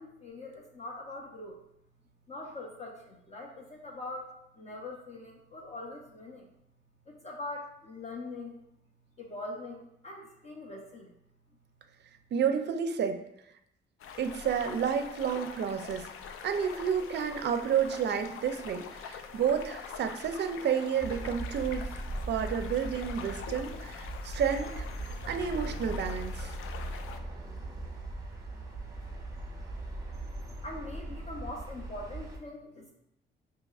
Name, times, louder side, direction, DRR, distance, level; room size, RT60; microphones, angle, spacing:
voice 1, 0.0-1.6 2.3-6.5 7.0-8.6 9.2-11.1 30.6-32.9, left 2 dB, 30° left, -1 dB, 0.6 m, -42 dB
voice 2, 12.3-13.2 14.2-16.1 16.4-21.9 22.3-24.9 25.3-26.5, right 7 dB, 55° right, 7 dB, 0.4 m, -30 dB
sound 1, 14.0-27.2, left 6 dB, 90° left, 0.4 m, -44 dB
sound 2, 21.0-32.4, right 1 dB, 15° right, 0.9 m, -39 dB
5.2 x 2.8 x 2.3 m, 0.79 s
cardioid pair, 115°, 21 cm